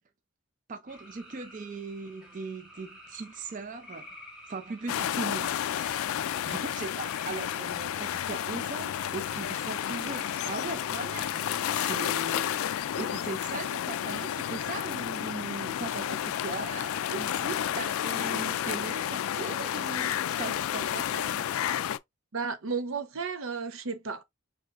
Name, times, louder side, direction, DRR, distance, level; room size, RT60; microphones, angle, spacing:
voice 1, 0.7-4.1 4.5-6.0 6.4-12.6 13.0-21.5, right 3 dB, 40° right, 0.5 m, -39 dB
sound 1, 0.9-10.6, left 1 dB, 5° right, 1.4 m, -50 dB
sound 2, 4.9-22.0, left 10 dB, 85° left, 0.3 m, -31 dB
voice 2, 22.3-24.2, right 5 dB, 75° right, 0.7 m, -33 dB
4.8 x 3.3 x 2.4 m
head